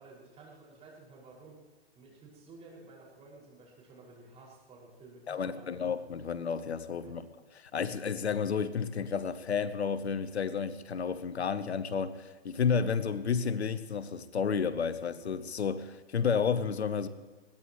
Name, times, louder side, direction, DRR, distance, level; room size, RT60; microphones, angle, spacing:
voice 1, 0.0-1.6 1.9-5.8 7.0-7.3, right 3 dB, 20° right, 6.1 m, -53 dB
voice 2, 5.3-7.2 7.7-17.1, left 6 dB, 90° left, 1.0 m, -31 dB
21.5 x 17.5 x 3.2 m
hypercardioid pair, 135°, 32 cm